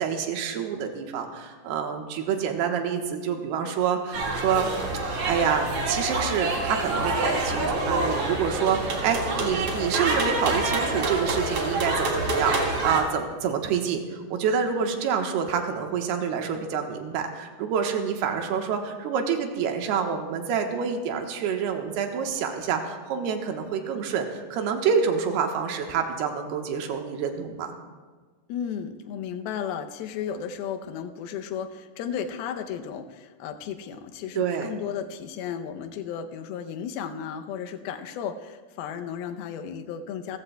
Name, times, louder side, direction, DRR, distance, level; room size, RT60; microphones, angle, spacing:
voice 1, 0.0-4.7 5.3-27.7 34.4-34.7, right 7 dB, 85° right, 4 dB, 3.1 m, -27 dB
sound 1, 4.1-13.0, right 2 dB, 45° right, 2.4 m, -27 dB
voice 2, 28.5-40.4, left 8 dB, 80° left, 7 dB, 2.6 m, -34 dB
27.5 x 15.0 x 2.3 m, 1.4 s
omnidirectional pair, 4.6 m